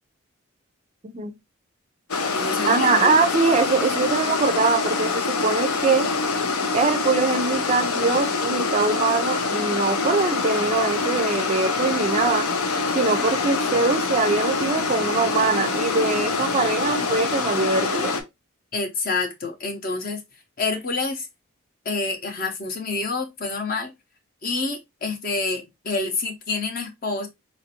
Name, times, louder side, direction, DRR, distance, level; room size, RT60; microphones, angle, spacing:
voice 1, 1.0-1.3 2.7-6.1 6.7-12.5 12.9-18.1, right 4 dB, 30° right, 0.4 m, -22 dB
sound 1, 2.1-18.2, left 4 dB, 90° left, 0.6 m, -25 dB
voice 2, 2.3-3.2 18.7-20.2 20.6-21.3 21.8-23.9 24.4-27.3, left 3 dB, 40° left, 0.7 m, -28 dB
4.0 x 2.5 x 2.8 m
head